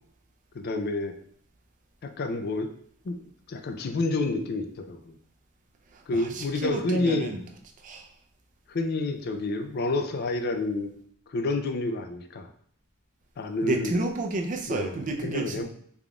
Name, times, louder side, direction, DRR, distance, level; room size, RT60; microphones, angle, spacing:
voice 1, 0.5-1.1 2.0-2.7 3.0-5.2 6.1-7.3 8.7-10.9 11.3-12.5 13.4-14.0 14.7-15.0 15.2-15.6, left 2 dB, 50° left, 6 dB, 0.4 m, -29 dB
voice 2, 5.9-7.4 7.8-8.1 13.6-15.6, right 2 dB, 40° right, 3 dB, 0.4 m, -31 dB
3.7 x 3.4 x 2.3 m, 0.62 s
head